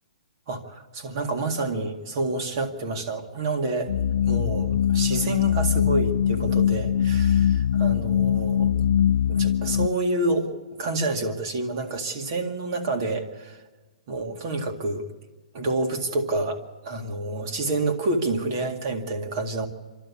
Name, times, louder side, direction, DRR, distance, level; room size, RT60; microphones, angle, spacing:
voice 1, 0.5-3.9 4.3-8.7 9.3-10.5 10.8-13.6 14.1-15.0 15.5-16.6 16.8-19.7, right 2 dB, 30° right, 4 dB, 2.1 m, -28 dB
sound 1, 3.9-9.9, left 9 dB, 90° left, 1.1 m, -22 dB
27.5 x 13.0 x 8.4 m, 1.3 s
hypercardioid pair, 175°, 4 cm